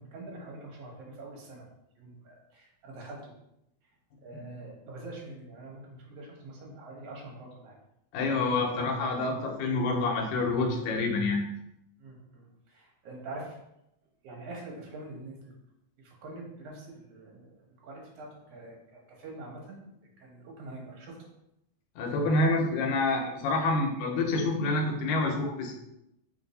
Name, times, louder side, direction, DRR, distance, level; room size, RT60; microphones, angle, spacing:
voice 1, 0.0-1.6 2.0-3.3 4.2-7.8 12.0-13.6 14.2-15.5 16.0-19.9 20.2-21.3, right 2 dB, 65° right, -2 dB, 1.8 m, -45 dB
voice 2, 8.1-11.4 22.0-25.7, left 2 dB, 80° left, 1 dB, 2.0 m, -27 dB
4.6 x 2.6 x 3.9 m, 0.83 s
omnidirectional pair, 3.5 m